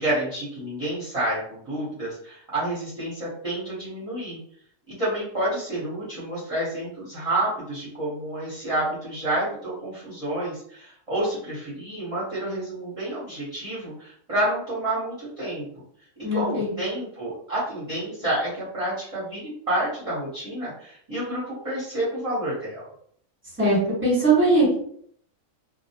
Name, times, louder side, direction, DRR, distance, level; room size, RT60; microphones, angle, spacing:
voice 1, 0.0-4.4 4.9-15.7 16.3-22.9, right 1 dB, 30° right, -9 dB, 0.8 m, -29 dB
voice 2, 16.2-16.7 23.6-24.8, right 2 dB, 10° right, -6 dB, 1.1 m, -20 dB
2.2 x 2.1 x 2.8 m, 0.63 s
omnidirectional pair, 1.4 m